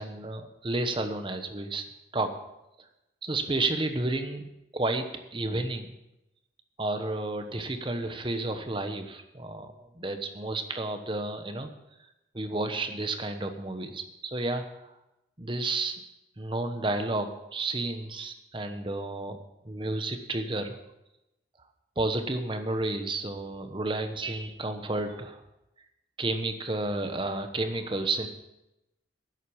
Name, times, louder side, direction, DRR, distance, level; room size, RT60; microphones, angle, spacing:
voice 1, 0.0-1.9 2.1-2.3 3.2-5.9 6.8-11.7 12.3-14.9 15.4-16.0 16.4-19.4 19.6-20.8 22.0-25.4 26.2-28.3, right 2 dB, 25° right, 7 dB, 1.0 m, -31 dB
11.0 x 8.1 x 7.1 m, 0.90 s
head